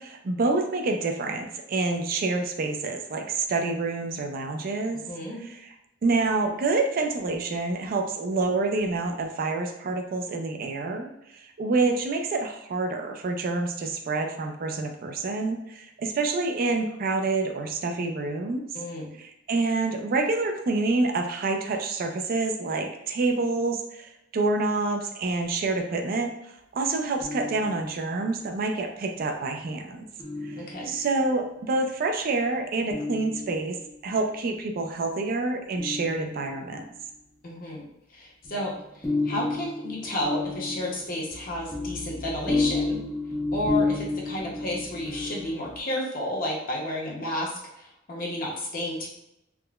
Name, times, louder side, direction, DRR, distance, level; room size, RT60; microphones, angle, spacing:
voice 1, 0.0-5.0 6.0-11.1 11.4-18.6 19.2-26.3 26.7-30.1 30.4-30.5 30.8-33.8 34.0-36.9, right 3 dB, 50° right, 3 dB, 0.4 m, -27 dB
voice 2, 5.1-5.4 18.7-19.2 30.6-30.9 37.4-37.8 38.1-43.0 43.5-49.1, left 1 dB, 45° left, -3 dB, 0.7 m, -32 dB
sound 1, 27.2-28.3 30.2-31.3 32.9-34.0 35.8-36.8 38.4-45.8, left 3 dB, 15° left, 0.4 m, -31 dB
3.6 x 2.1 x 2.3 m, 0.84 s
head